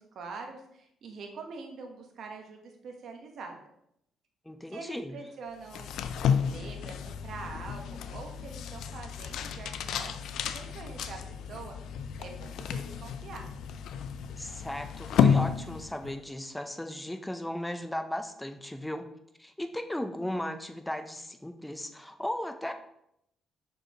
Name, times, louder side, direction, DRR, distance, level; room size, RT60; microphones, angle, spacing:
voice 1, 0.0-3.6 4.7-5.9 6.3-10.2 10.5-11.7 12.2-13.5, right 4 dB, 65° right, 3 dB, 1.2 m, -44 dB
voice 2, 4.5-5.2 14.4-19.0 19.4-22.7, left 1 dB, 5° left, 7 dB, 0.6 m, -36 dB
sound 1, 5.7-16.2, left 7 dB, 80° left, 0.4 m, -31 dB
6.2 x 5.3 x 3.0 m, 0.76 s
cardioid pair, 90°, 0 cm